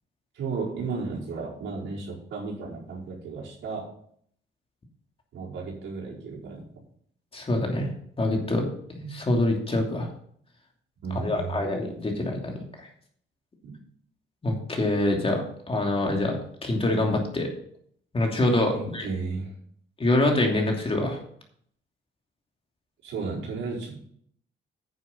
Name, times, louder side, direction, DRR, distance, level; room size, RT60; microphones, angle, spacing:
voice 1, 0.3-3.9 5.3-6.7 11.0-11.6 13.6-13.7 18.7-19.6 23.0-24.0, right 4 dB, 75° right, -4 dB, 4.7 m, -34 dB
voice 2, 7.3-7.9 8.2-8.7 9.0-10.1 11.1-12.6 14.4-17.5 18.1-19.0 20.0-21.2, left 1 dB, 30° left, 1 dB, 2.8 m, -25 dB
9.6 x 7.3 x 5.8 m, 0.63 s
cardioid pair, 90°, 20 cm